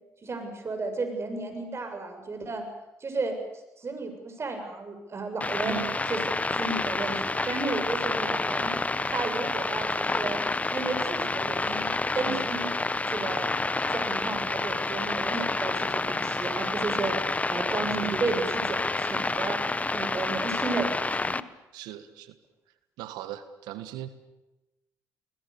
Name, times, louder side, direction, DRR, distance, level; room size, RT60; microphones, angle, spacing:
voice 1, 0.2-2.6 3.0-3.4 3.8-5.8 6.1-6.2 6.5-8.7 9.1-10.4 10.7-13.5 13.9-17.1 17.5-19.6 19.9-21.4, right 3 dB, 40° right, 6 dB, 7.4 m, -33 dB
sound 1, 5.4-21.4, left 3 dB, 20° left, 1.1 m, -29 dB
voice 2, 5.6-6.0 12.2-12.5 17.9-18.2 21.7-22.4 23.0-24.1, right 14 dB, 80° right, 11 dB, 1.5 m, -38 dB
28.5 x 21.0 x 7.0 m, 0.97 s
supercardioid pair, 60°, 7 cm